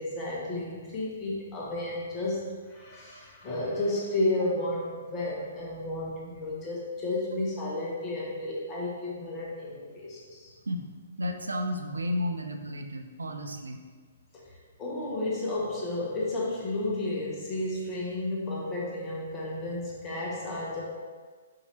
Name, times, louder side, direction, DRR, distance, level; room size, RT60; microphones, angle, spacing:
voice 1, 0.0-10.5 14.3-20.8, left 2 dB, 25° left, -5 dB, 1.1 m, -32 dB
voice 2, 11.2-13.8, left 1 dB, 75° right, 5 dB, 0.3 m, -32 dB
4.7 x 2.8 x 2.9 m, 1.5 s
figure-of-eight pair, 125°, 0 cm